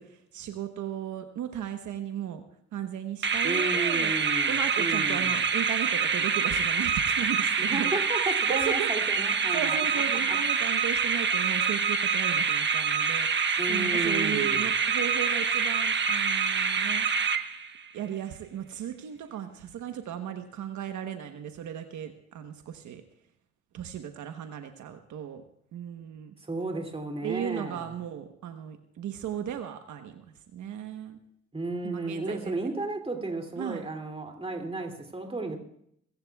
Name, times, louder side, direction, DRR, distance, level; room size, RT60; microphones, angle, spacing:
voice 1, 0.0-2.4 2.7-4.1 4.5-7.9 8.2-17.1 17.9-23.0 23.7-25.4 25.7-26.3 27.2-30.2 30.5-31.2 31.8-32.5 33.6-33.8, right 9 dB, 75° right, 6 dB, 1.1 m, -36 dB
sound 1, 3.2-17.9, right 6 dB, 40° right, 1.1 m, -26 dB
voice 2, 3.4-5.4 7.6-10.0 10.3-10.4 13.6-14.7 26.4-27.9 31.5-35.6, right 2 dB, 20° right, 3 dB, 2.6 m, -33 dB
23.5 x 15.0 x 2.3 m, 0.71 s
cardioid pair, 90°, 30 cm